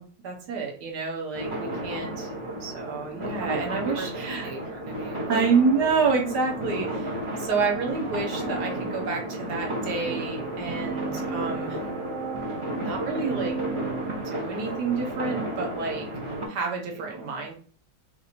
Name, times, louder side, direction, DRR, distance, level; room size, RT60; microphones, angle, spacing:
voice 1, 0.0-4.5 5.3-11.8 12.8-13.6 14.2-16.1 16.5-17.5, right 4 dB, 70° right, 0 dB, 1.4 m, -28 dB
sound 1, 1.3-16.5, right 1 dB, 30° right, 0.5 m, -33 dB
voice 2, 3.8-5.5 16.9-17.5, right 4 dB, 50° right, 1 dB, 1.1 m, -40 dB
sound 2, 7.5-15.7, right 5 dB, 85° right, 1.9 m, -38 dB
3.4 x 3.0 x 4.1 m, 0.43 s
omnidirectional pair, 1.9 m